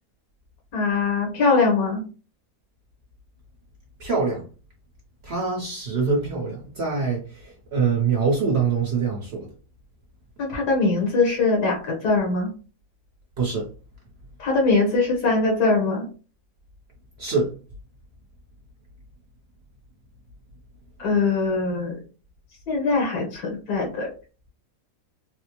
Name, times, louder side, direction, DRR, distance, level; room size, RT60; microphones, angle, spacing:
voice 1, 0.7-2.0 10.4-12.5 14.4-16.1 21.0-22.0 22.7-24.1, left 3 dB, 85° left, 1.7 m, -22 dB
voice 2, 4.0-4.5 5.2-9.5 13.4-13.7 17.2-17.5, right 5 dB, 50° right, 0.9 m, -24 dB
4.1 x 2.0 x 2.9 m
omnidirectional pair, 1.7 m